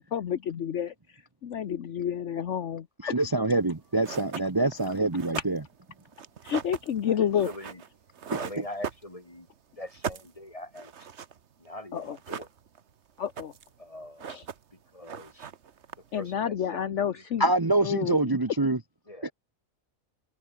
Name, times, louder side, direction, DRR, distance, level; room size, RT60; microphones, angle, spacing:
voice 1, 0.0-3.1 6.4-7.5 11.9-12.2 13.2-13.5 14.2-14.5 16.1-17.5 17.8-18.3, left 9 dB, 65° left, 1.2 m, -30 dB
voice 2, 3.0-5.6 8.3-8.4 17.4-18.8 19.2-19.3, right 2 dB, 20° right, 1.1 m, -25 dB
sound 1, 3.6-3.7 4.0-9.5 9.8-11.7 12.0-12.9 13.2-13.8 14.0-14.8 15.0-16.3, right 7 dB, 55° right, 1.4 m, -39 dB
voice 3, 7.2-7.8 8.3-9.5 9.8-11.1 11.6-12.5 13.8-14.4 14.7-15.5 16.1-17.2 19.1-19.3, left 1 dB, 25° left, 4.3 m, -43 dB
omnidirectional pair, 1.4 m